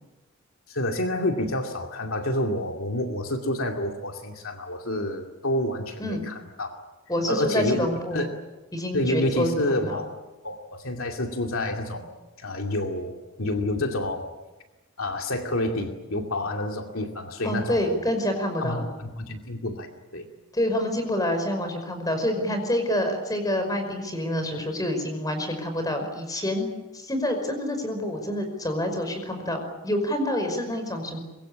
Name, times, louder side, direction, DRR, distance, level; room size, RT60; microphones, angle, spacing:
voice 1, 0.7-6.7 7.3-8.3 8.9-10.1 10.4-12.1 12.4-13.1 13.4-14.3 15.0-18.0 18.6-20.3, left 1 dB, 70° left, 3 dB, 2.5 m, -28 dB
voice 2, 7.1-8.3 8.7-10.0 17.4-18.9 20.5-26.7 26.9-31.2, left 1 dB, 15° left, 6 dB, 5.4 m, -27 dB
25.0 x 22.0 x 8.7 m, 1.1 s
head